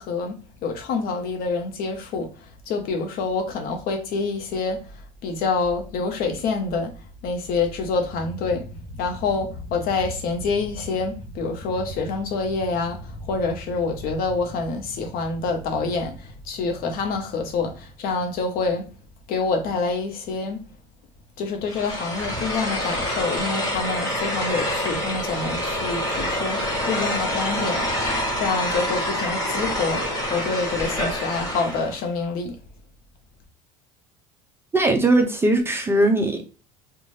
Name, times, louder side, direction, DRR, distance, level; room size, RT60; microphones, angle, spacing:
voice 1, 0.0-18.9 19.3-20.6 21.4-27.9 28.4-32.6, left 4 dB, 55° left, 0.8 m, -27 dB
sound 1, 21.7-32.0, left 1 dB, 20° left, 1.4 m, -26 dB
voice 2, 34.7-36.4, right 2 dB, 15° right, 0.4 m, -19 dB
2.6 x 2.3 x 3.1 m
supercardioid pair, 105°, 18 cm